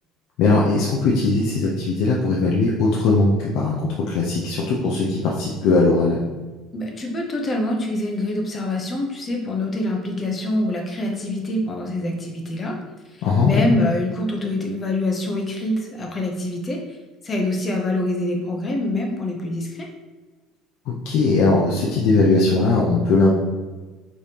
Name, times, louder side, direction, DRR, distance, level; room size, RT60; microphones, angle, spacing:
voice 1, 0.4-6.2 13.2-13.7 20.9-23.3, left 3 dB, 65° left, -3 dB, 0.6 m, -19 dB
voice 2, 6.7-12.8 13.4-16.8 17.2-19.9, left 1 dB, 25° left, 1 dB, 0.7 m, -25 dB
5.1 x 3.3 x 2.8 m, 1.3 s
cardioid pair, 150°, 0 cm